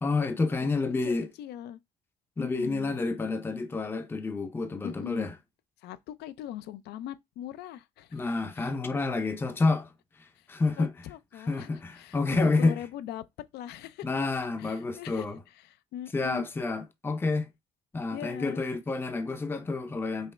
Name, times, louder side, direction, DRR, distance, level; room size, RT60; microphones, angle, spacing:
voice 1, 0.0-1.3 2.4-5.3 8.1-9.9 10.5-10.9 11.5-12.8 14.0-15.4 16.1-17.5 17.9-20.3, left 3 dB, 15° left, 0.5 m, -29 dB
voice 2, 1.0-1.8 2.4-2.9 4.8-5.3 5.8-8.2 8.5-8.7 10.4-10.5 10.8-13.2 13.5-14.1 14.6-16.5 18.1-18.6, left 11 dB, 75° left, 0.4 m, -41 dB
5.3 x 2.0 x 3.2 m
cardioid pair, 110°, 17 cm